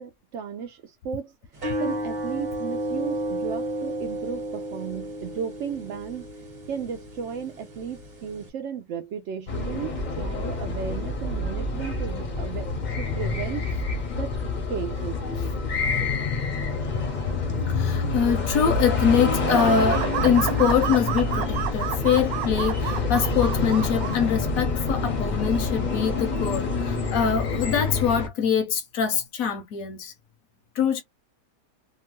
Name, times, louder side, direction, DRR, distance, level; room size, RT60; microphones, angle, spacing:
voice 1, 0.0-1.3 1.8-6.2 6.7-12.7 13.0-13.7 14.2-14.4 14.7-15.2, right 8 dB, 90° right, 0.6 m, -34 dB
sound 1, 1.6-8.5, right 1 dB, 30° right, 1.1 m, -32 dB
sound 2, 9.5-28.3, left 3 dB, 40° left, 0.6 m, -27 dB
voice 2, 17.7-30.1 30.8-31.0, left 7 dB, 65° left, 1.0 m, -24 dB
sound 3, 19.4-24.2, right 11 dB, 70° right, 1.0 m, -30 dB
2.9 x 2.2 x 2.9 m
omnidirectional pair, 1.8 m